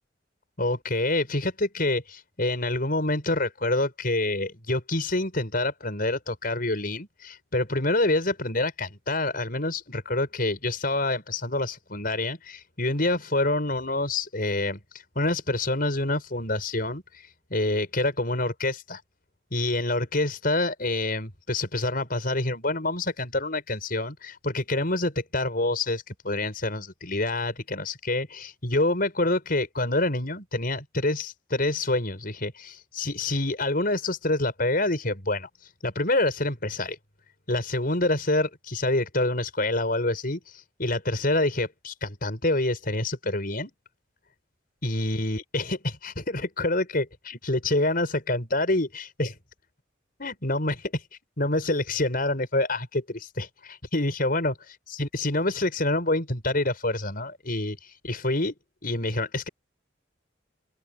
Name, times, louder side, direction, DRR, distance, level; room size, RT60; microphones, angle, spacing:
voice 1, 0.6-14.8 15.1-17.0 17.5-19.0 19.5-35.5 35.8-37.0 37.5-43.7 44.8-49.3 50.2-51.0 51.4-54.5 55.0-58.5 58.8-59.5, left 2 dB, 50° left, 6.2 m, -27 dB
open air
head